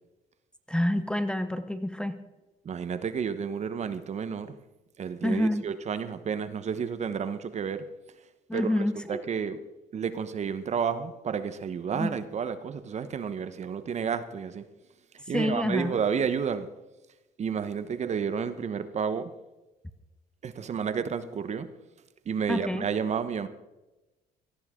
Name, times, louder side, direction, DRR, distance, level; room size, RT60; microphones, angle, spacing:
voice 1, 0.7-2.2 5.2-5.6 8.5-9.2 11.9-12.2 15.3-16.0 22.5-22.9, left 1 dB, 5° left, 11 dB, 0.8 m, -28 dB
voice 2, 2.6-4.5 5.0-7.9 8.5-8.7 9.1-9.6 9.9-14.6 15.3-16.7 17.4-19.3 20.4-21.7 22.3-23.5, right 6 dB, 40° right, 11 dB, 1.1 m, -31 dB
17.5 x 14.5 x 3.8 m, 1.1 s
cardioid pair, 110°, 17 cm